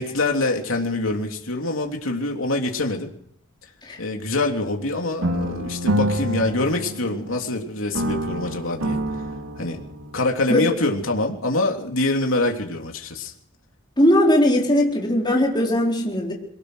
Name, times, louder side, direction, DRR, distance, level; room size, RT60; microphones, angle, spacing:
voice 1, 0.0-3.1 4.0-9.0 9.6-9.8 10.1-13.3, left 2 dB, 70° left, 2 dB, 3.2 m, -25 dB
sound 1, 5.2-7.6 7.9-10.2, right 1 dB, 90° right, 2.6 m, -27 dB
voice 2, 14.0-16.3, left 1 dB, 20° left, -2 dB, 4.4 m, -19 dB
23.5 x 18.5 x 6.4 m, 0.69 s
head